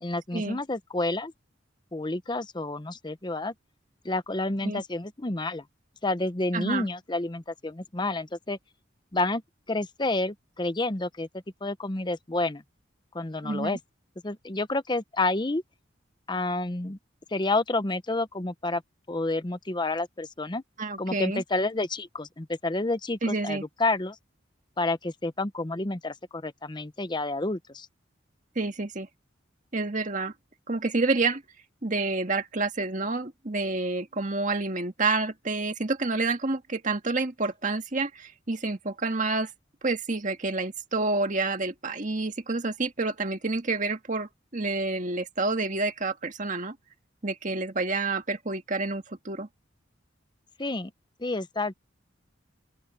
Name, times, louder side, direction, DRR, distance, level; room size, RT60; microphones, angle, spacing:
voice 1, 0.0-1.3 1.9-3.5 4.0-5.6 6.0-8.6 9.1-9.4 9.7-11.3 11.6-12.6 13.1-13.8 14.2-15.6 16.3-17.0 17.3-18.8 19.1-20.6 21.0-24.2 24.8-27.9 50.6-50.9 51.2-51.7, left 2 dB, 25° left, 0.8 m, -29 dB
voice 2, 6.5-6.9 13.4-13.8 20.8-21.4 23.2-23.6 28.5-29.1 29.7-30.3 30.7-31.4 31.8-39.5 39.8-46.7 47.2-49.5, right 3 dB, 40° right, 1.8 m, -28 dB
open air
head